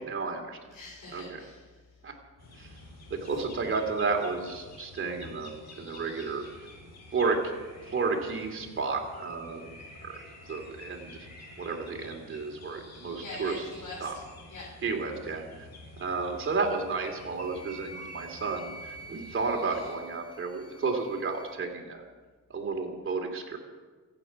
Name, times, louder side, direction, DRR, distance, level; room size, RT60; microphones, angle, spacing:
voice 1, 0.0-0.6 1.1-1.4 2.0-2.1 2.6-2.8 3.1-6.4 7.1-7.4 7.8-9.7 10.0-10.2 10.5-11.3 11.6-13.6 14.0-14.1 14.8-15.7 16.0-22.0 22.5-23.6, right 4 dB, 40° right, 2 dB, 2.7 m, -32 dB
voice 2, 0.7-2.0 2.6-2.8 3.2-3.4 13.1-14.1 14.5-14.7, left 2 dB, 70° left, -4 dB, 4.8 m, -44 dB
sound 1, 2.4-19.9, left 2 dB, 55° left, 6.3 m, -50 dB
Wind instrument woodwind instrument, 17.4-21.6, right 1 dB, 5° left, 6.8 m, -47 dB
26.5 x 9.2 x 5.8 m, 1.4 s
wide cardioid pair, 165°, 31 cm